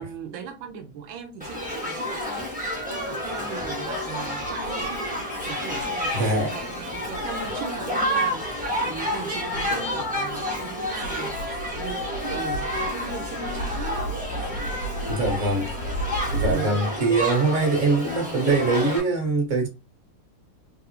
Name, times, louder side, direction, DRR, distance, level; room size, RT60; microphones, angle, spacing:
voice 1, 0.0-14.1 16.5-16.8, right 7 dB, 80° right, 1.4 m, -38 dB
Shout / Human group actions, 1.4-19.0, left 1 dB, 10° right, 0.3 m, -30 dB
sound 1, 4.4-16.5, right 1 dB, 75° left, 0.9 m, -36 dB
voice 2, 6.1-6.5 15.1-15.7 16.3-19.7, right 3 dB, 45° right, 1.3 m, -23 dB
3.5 x 2.4 x 2.8 m
omnidirectional pair, 2.2 m